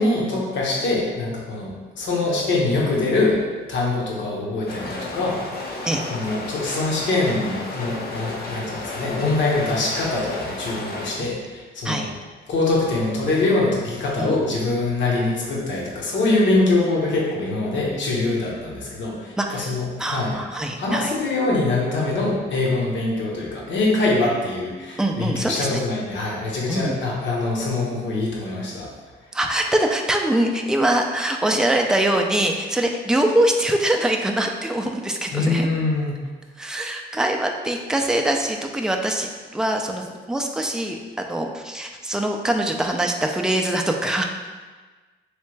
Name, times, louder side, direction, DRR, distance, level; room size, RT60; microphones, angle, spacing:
voice 1, 0.0-3.4 3.7-5.4 5.8-12.1 12.5-19.8 20.1-20.3 20.8-28.9 35.3-36.2, left 2 dB, 70° left, -4 dB, 1.0 m, -23 dB
sound 1, 4.7-11.1, left 2 dB, 50° left, 0.7 m, -32 dB
voice 2, 19.4-21.1 25.0-25.8 26.7-27.0 29.3-35.7 36.6-44.2, right 1 dB, 5° right, 2 dB, 0.4 m, -23 dB
3.3 x 3.3 x 3.2 m, 1.3 s
cardioid pair, 90°, 20 cm